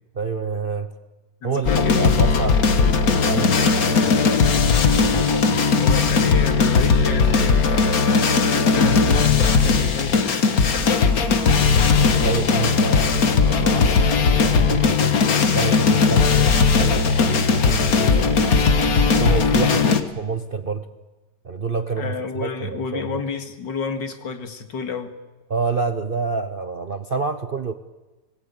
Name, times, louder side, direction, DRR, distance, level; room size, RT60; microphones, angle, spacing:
voice 1, 0.1-0.9 1.4-5.6 12.0-15.2 15.5-18.8 19.2-20.9 21.4-23.2 25.5-27.7, right 5 dB, 40° right, 9 dB, 0.8 m, -28 dB
voice 2, 1.4-2.3 5.6-11.7 16.1-16.3 19.6-19.9 22.0-25.1, left 5 dB, 75° left, 8 dB, 2.5 m, -31 dB
sound 1, 1.7-20.0, left 5 dB, 55° left, 1.8 m, -18 dB
26.0 x 19.5 x 8.3 m, 1.2 s
omnidirectional pair, 2.0 m